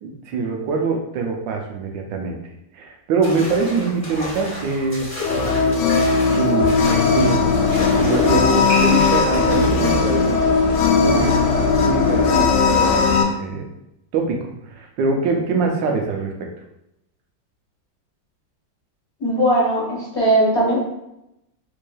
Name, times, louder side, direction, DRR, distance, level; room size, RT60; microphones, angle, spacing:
voice 1, 0.0-2.4 2.7-5.5 6.0-6.8 7.1-7.5 7.8-10.4 11.0-11.4 11.8-13.7 14.1-16.5, right 4 dB, 80° right, 2 dB, 1.3 m, -24 dB
sound 1, 3.2-10.1, left 2 dB, 15° left, 0.9 m, -32 dB
sound 2, 5.2-13.2, left 5 dB, 75° left, 1.2 m, -18 dB
sound 3, 6.6-13.2, left 1 dB, 60° right, 1.2 m, -27 dB
voice 2, 19.2-20.8, right 1 dB, 45° left, -5 dB, 1.1 m, -18 dB
4.3 x 3.2 x 2.3 m, 0.85 s
omnidirectional pair, 2.0 m